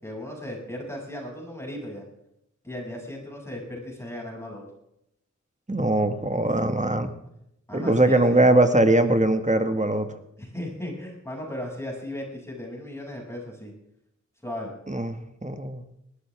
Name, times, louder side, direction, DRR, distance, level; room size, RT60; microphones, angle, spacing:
voice 1, 0.0-2.1 2.6-4.6 7.7-8.4 10.4-13.7 14.4-14.7, left 1 dB, 10° left, -1 dB, 7.2 m, -36 dB
voice 2, 5.7-7.1 7.7-10.1 14.9-15.8, right 2 dB, 25° right, 8 dB, 1.9 m, -21 dB
19.5 x 13.5 x 3.6 m, 0.79 s
cardioid pair, 45°, 29 cm